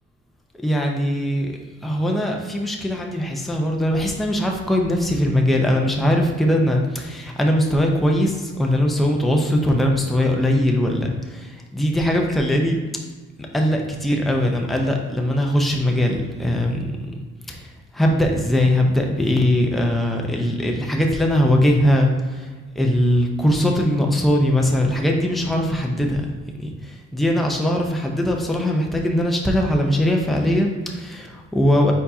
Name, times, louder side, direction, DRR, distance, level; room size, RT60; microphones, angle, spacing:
voice 1, 0.6-1.5 1.8-12.8 13.4-17.0 17.5-31.9, left 1 dB, ahead, 1 dB, 0.6 m, -21 dB
4.3 x 4.2 x 2.7 m, 1.3 s
cardioid pair, 90°, 30 cm